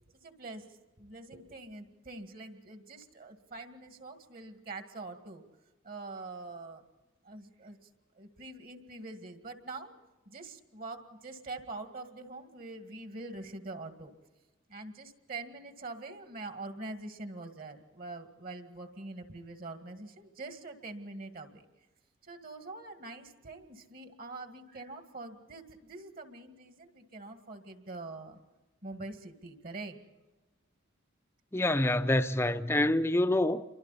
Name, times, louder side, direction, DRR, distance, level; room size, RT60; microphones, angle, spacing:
voice 1, 0.2-0.7 1.0-5.4 5.8-6.8 7.2-7.8 8.2-10.0 10.3-14.1 14.7-21.7 22.2-28.4 28.8-30.0, right 2 dB, 45° right, 2.0 m, -44 dB
voice 2, 31.5-33.6, left 1 dB, 10° left, 0.6 m, -26 dB
28.5 x 24.0 x 4.2 m
head